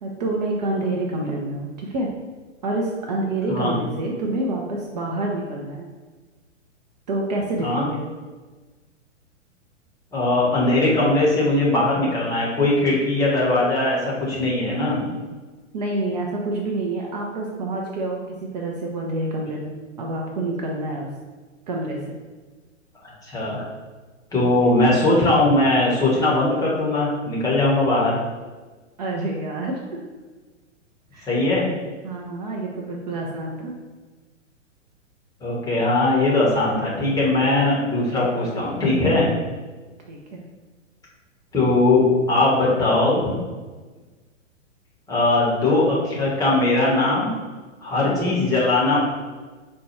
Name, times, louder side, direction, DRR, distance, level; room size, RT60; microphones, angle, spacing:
voice 1, 0.0-2.1 2.6-5.9 7.1-8.1 15.7-21.1 21.7-22.2 29.0-30.0 31.1-31.3 32.0-33.7 40.1-40.4 48.0-48.4, right 2 dB, 35° right, -1 dB, 0.5 m, -27 dB
voice 2, 10.1-15.1 23.3-23.6 24.3-28.2 31.3-31.7 35.4-39.3 41.5-43.4 45.1-47.3 47.8-49.0, left 2 dB, 10° left, -5 dB, 0.7 m, -20 dB
4.4 x 2.2 x 4.2 m, 1.3 s
figure-of-eight pair, 115°, 38 cm